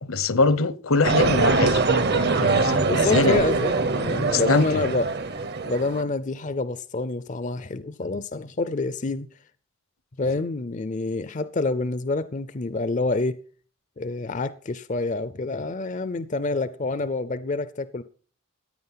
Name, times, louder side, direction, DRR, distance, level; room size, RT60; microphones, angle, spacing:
voice 1, 0.0-1.8 2.1-3.4 4.3-4.8, left 3 dB, 75° left, 1.0 m, -23 dB
sound 1, 1.0-6.0, right 3 dB, 50° right, 0.9 m, -23 dB
voice 2, 2.8-5.1 5.7-9.3 10.2-13.4 14.0-18.0, left 3 dB, 35° left, 0.5 m, -27 dB
15.5 x 9.5 x 5.7 m
head